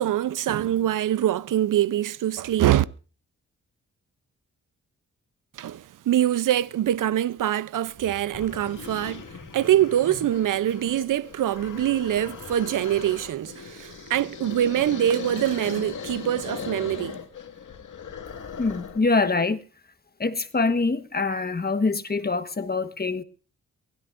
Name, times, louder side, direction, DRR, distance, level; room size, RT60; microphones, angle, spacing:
voice 1, 0.0-2.8 5.6-9.2 9.5-17.2, right 12 dB, 70° right, 0.7 m, -24 dB
sound 1, 7.9-8.0 8.3-19.1, left 6 dB, 70° left, 2.1 m, -38 dB
voice 2, 18.6-19.6 20.2-23.2, left 3 dB, 30° left, 1.4 m, -24 dB
23.5 x 16.5 x 2.6 m
cardioid pair, 55°, 32 cm